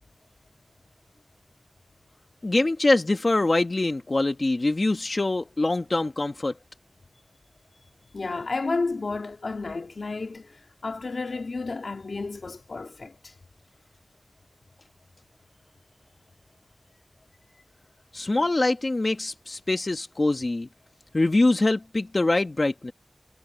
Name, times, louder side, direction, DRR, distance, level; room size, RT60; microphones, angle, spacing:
voice 1, 2.4-6.5 18.1-20.7 21.1-22.9, left 2 dB, 50° left, 1.6 m, -24 dB
voice 2, 8.1-13.3, left 3 dB, 85° left, 2.9 m, -32 dB
wide cardioid pair, 60°, 0 cm